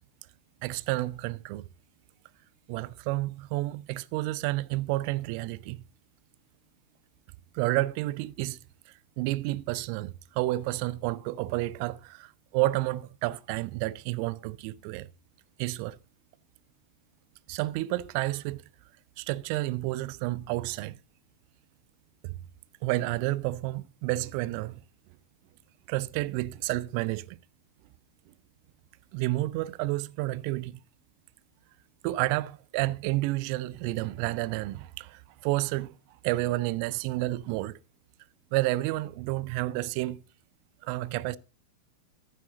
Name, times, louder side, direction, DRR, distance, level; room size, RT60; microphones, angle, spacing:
voice 1, 0.6-1.7 2.7-5.8 7.5-8.6 9.2-15.1 15.6-16.0 17.5-18.6 19.2-21.0 22.2-22.4 22.8-24.8 25.9-27.4 29.1-30.7 32.0-36.0 36.2-37.8 38.5-40.2 40.8-41.4, right 18 dB, 45° right, 0.5 m, -30 dB
14.5 x 7.7 x 3.8 m
figure-of-eight pair, 90°, 0 cm